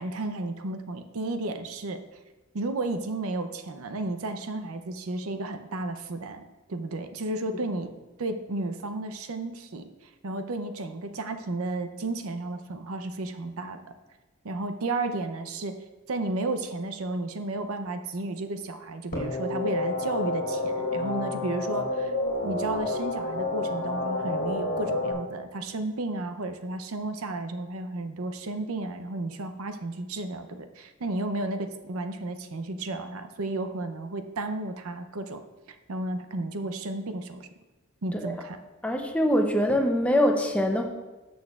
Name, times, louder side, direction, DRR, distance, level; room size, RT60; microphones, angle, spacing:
voice 1, 0.0-2.0 2.5-7.9 8.2-9.9 10.2-13.8 14.4-15.8 16.1-22.1 22.4-35.4 35.9-37.5 38.0-38.6, right 2 dB, 70° right, 8 dB, 0.6 m, -33 dB
sound 1, 19.1-25.1, left 2 dB, 40° left, 2.5 m, -29 dB
voice 2, 38.8-40.9, equal, 5° left, 3 dB, 0.6 m, -23 dB
13.0 x 6.4 x 2.4 m, 1.2 s
head